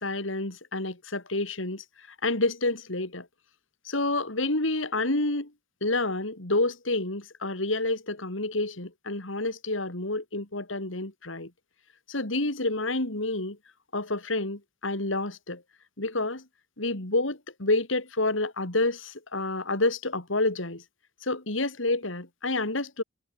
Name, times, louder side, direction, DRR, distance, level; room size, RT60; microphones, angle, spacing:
voice 1, 0.0-1.8 2.2-3.3 3.9-5.5 5.8-11.5 12.1-13.6 13.9-15.6 16.0-16.4 16.8-20.8 21.2-23.0, left 2 dB, 85° left, 3.9 m, -29 dB
head